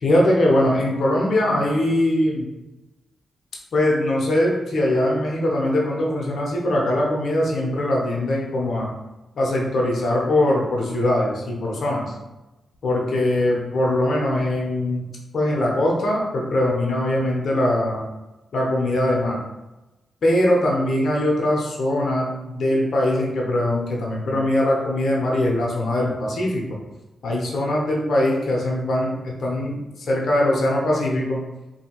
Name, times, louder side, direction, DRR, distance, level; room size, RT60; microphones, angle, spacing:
voice 1, 0.0-2.5 3.7-8.9 9.4-12.1 12.8-15.0 15.3-18.0 18.5-19.4 20.2-26.8 27.2-29.8 30.1-31.4, left 1 dB, 70° left, -2 dB, 0.6 m, -21 dB
2.7 x 2.6 x 2.8 m, 1.0 s
supercardioid pair, 45°, 0 cm